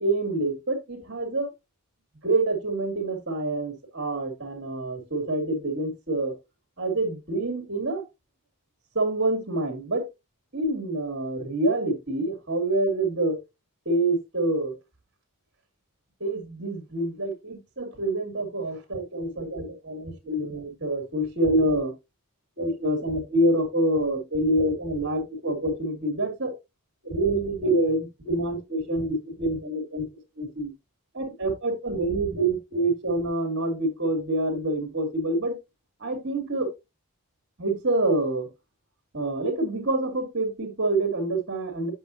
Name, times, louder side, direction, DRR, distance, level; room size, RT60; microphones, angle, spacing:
voice 1, 0.0-1.5 2.2-6.3 6.8-8.0 8.9-10.0 10.5-13.4 13.8-14.7 16.2-21.9 22.6-26.5 27.0-30.1 30.4-30.7 31.1-35.6 36.0-36.7 37.6-38.5 39.1-41.9, right 2 dB, 50° right, 5 dB, 2.7 m, -26 dB
8.4 x 6.2 x 2.8 m, 0.22 s
head